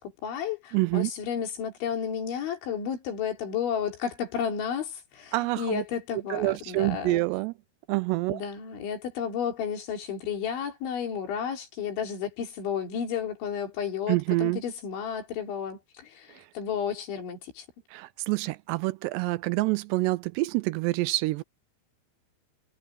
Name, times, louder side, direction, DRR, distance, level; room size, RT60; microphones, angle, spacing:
voice 1, 0.0-7.3 8.3-17.7, left 7 dB, 85° left, 6.1 m, -32 dB
voice 2, 0.7-1.1 5.3-5.8 6.3-7.5 7.9-8.4 14.1-14.6 17.9-21.4, right 20 dB, 80° right, 2.5 m, -27 dB
omnidirectional pair, 5.3 m